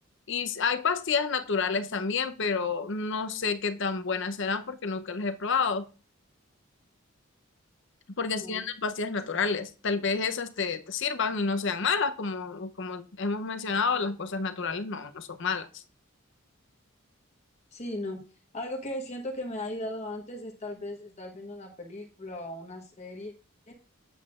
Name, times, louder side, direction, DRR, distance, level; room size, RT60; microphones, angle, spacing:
voice 1, 0.3-5.9 8.2-15.8, left 5 dB, 60° left, 0.7 m, -29 dB
voice 2, 8.2-8.6 17.7-18.2 18.5-23.3 23.7-23.8, left 1 dB, 35° left, 1.1 m, -37 dB
7.9 x 7.9 x 2.4 m
head